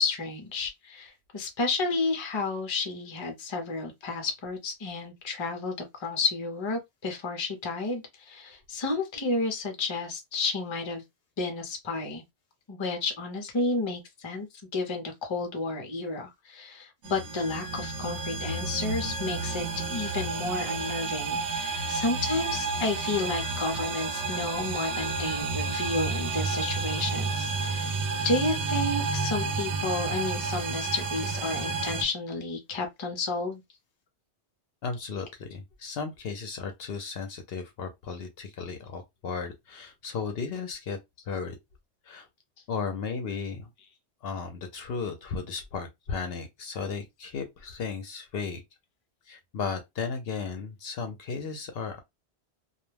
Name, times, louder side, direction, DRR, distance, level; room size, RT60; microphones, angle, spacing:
voice 1, 0.0-11.0 11.4-12.2 12.7-14.5 14.7-27.9 28.2-33.6, left 3 dB, 30° left, 0.6 m, -31 dB
sound 1, 17.0-32.0, right 4 dB, 80° right, 0.9 m, -31 dB
voice 2, 34.8-41.0 41.3-41.6 42.0-42.3 42.7-43.7 44.2-48.6 49.3-52.0, left 5 dB, 65° left, 0.7 m, -35 dB
2.3 x 2.1 x 3.1 m
omnidirectional pair, 1.1 m